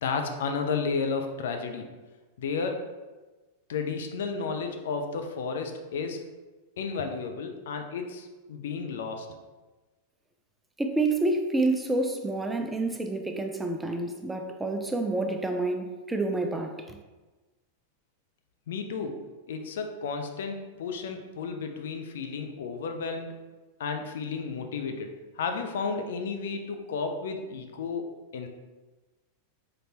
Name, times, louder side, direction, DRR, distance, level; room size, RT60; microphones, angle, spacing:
voice 1, 0.0-1.8 2.4-2.8 3.7-6.2 6.8-9.3 18.7-19.2 19.5-23.3 23.8-28.5, left 5 dB, 60° left, 5 dB, 0.4 m, -32 dB
voice 2, 10.8-17.0, right 2 dB, 10° right, 4 dB, 0.4 m, -28 dB
3.9 x 3.2 x 2.8 m, 1.2 s
figure-of-eight pair, 90°, 0 cm